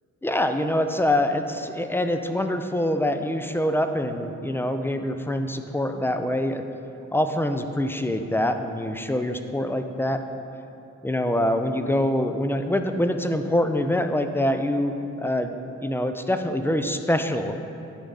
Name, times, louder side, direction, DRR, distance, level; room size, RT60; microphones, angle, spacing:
voice 1, 0.2-6.6 7.1-10.2 11.0-15.6 15.8-17.6, left 1 dB, 10° left, 7 dB, 0.3 m, -25 dB
10.0 x 3.4 x 3.9 m, 2.9 s
cardioid pair, 75°, 31 cm